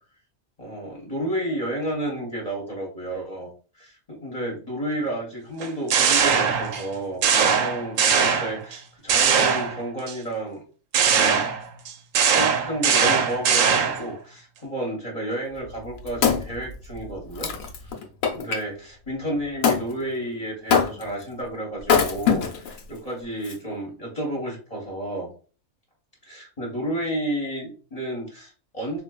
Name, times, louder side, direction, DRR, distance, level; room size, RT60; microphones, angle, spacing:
voice 1, 0.6-10.6 11.0-11.4 12.3-17.5 17.8-18.0 18.3-25.3 26.2-29.0, right 1 dB, 30° left, -2 dB, 0.9 m, -31 dB
sound 1, 5.6-6.9 7.2-8.8 9.1-10.1 10.9-14.1, right 6 dB, 75° right, 0.9 m, -21 dB
Wood, 15.6-18.6 19.6-19.9 20.7-21.2 21.8-22.8 23.4-23.5, left 6 dB, 75° left, 1.0 m, -23 dB
4.1 x 2.5 x 2.2 m, 0.38 s
omnidirectional pair, 1.5 m